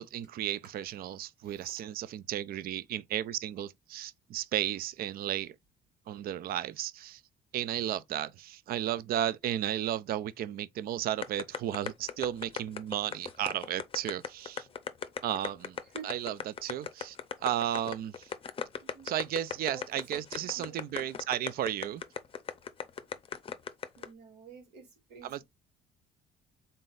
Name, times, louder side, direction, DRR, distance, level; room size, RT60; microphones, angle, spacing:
voice 1, 0.0-5.6 6.1-7.2 7.5-14.7 15.2-15.8 16.0-18.3 19.0-22.0 25.2-25.4, right 11 dB, 60° right, 0.4 m, -34 dB
voice 2, 1.4-1.8 12.1-12.5 14.6-15.1 15.8-16.1 18.8-19.1 19.6-19.9 20.1-21.1 23.9-25.4, right 5 dB, 85° right, 2.6 m, -51 dB
sound 1, 11.2-24.1, left 7 dB, 30° left, 0.6 m, -37 dB
3.9 x 3.9 x 2.5 m
cardioid pair, 105°, 17 cm